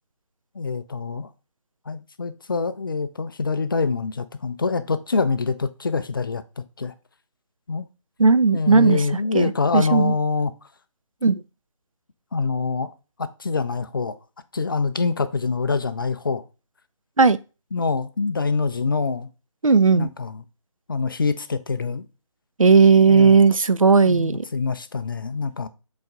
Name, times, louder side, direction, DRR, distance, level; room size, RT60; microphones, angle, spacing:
voice 1, 0.5-1.3 1.9-6.9 7.7-7.9 8.5-10.5 12.3-12.9 13.2-14.2 14.5-16.4 17.7-19.3 19.9-20.4 20.9-22.0 23.1-23.5 24.0-25.7, left 4 dB, 40° left, 0.5 m, -25 dB
voice 2, 8.2-9.0 9.3-10.1 11.2-11.4 17.2-17.4 19.6-20.1 22.6-24.5, right 4 dB, 75° right, 0.5 m, -16 dB
7.6 x 4.1 x 3.6 m
figure-of-eight pair, 150°, 17 cm